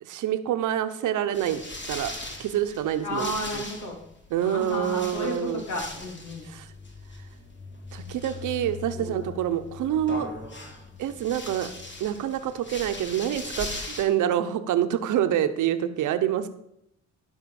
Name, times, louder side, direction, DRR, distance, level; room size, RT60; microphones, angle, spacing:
voice 1, 0.0-1.6 1.9-2.1 2.4-3.9 4.3-5.7 6.5-6.7 7.9-10.3 11.0-11.7 12.0-16.5, right 10 dB, 80° right, 9 dB, 1.1 m, -27 dB
sound 1, 1.3-14.0, left 3 dB, 40° left, 3.2 m, -39 dB
voice 2, 3.0-4.0 4.4-6.5 9.0-9.3, left 1 dB, 75° left, 1 dB, 3.4 m, -33 dB
13.5 x 5.5 x 7.1 m, 0.78 s
cardioid pair, 90°, 30 cm